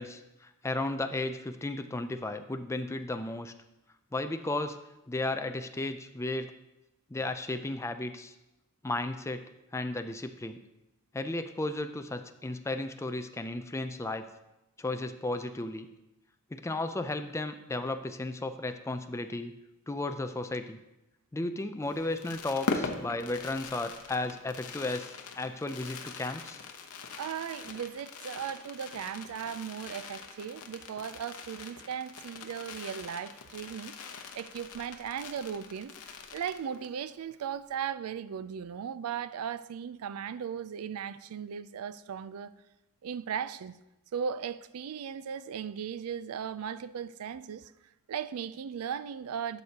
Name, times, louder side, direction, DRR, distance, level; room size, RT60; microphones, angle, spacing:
voice 1, 0.0-3.5 4.1-4.8 5.1-6.5 7.1-8.3 8.8-9.4 9.7-10.6 11.1-14.2 14.8-15.9 16.5-19.5 19.9-20.8 21.3-26.6, left 2 dB, 15° left, 0.4 m, -34 dB
Fireworks, 21.8-37.0 37.3-37.4 37.6-37.9, left 4 dB, 80° left, 0.8 m, -42 dB
voice 2, 27.2-42.5 43.0-43.7 44.1-47.7 48.1-49.6, right 8 dB, 70° right, 0.4 m, -37 dB
12.0 x 6.6 x 2.8 m
head